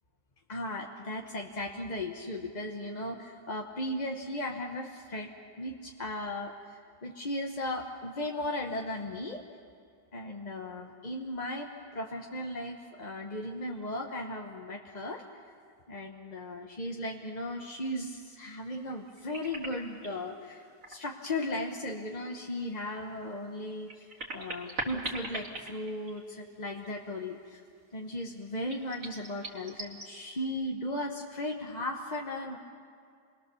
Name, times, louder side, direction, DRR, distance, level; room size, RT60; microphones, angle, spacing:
voice 1, 0.5-5.3 5.6-9.4 10.1-15.4 15.9-27.6 27.9-32.6, left 1 dB, 30° left, 1 dB, 1.0 m, -36 dB
sound 1, 18.9-20.2 20.7-21.7 22.1-22.2 23.6-26.6 26.8-26.9 28.7-30.1, right 2 dB, 45° right, 2.9 m, -40 dB
28.5 x 21.5 x 7.0 m, 2.2 s
omnidirectional pair, 1.9 m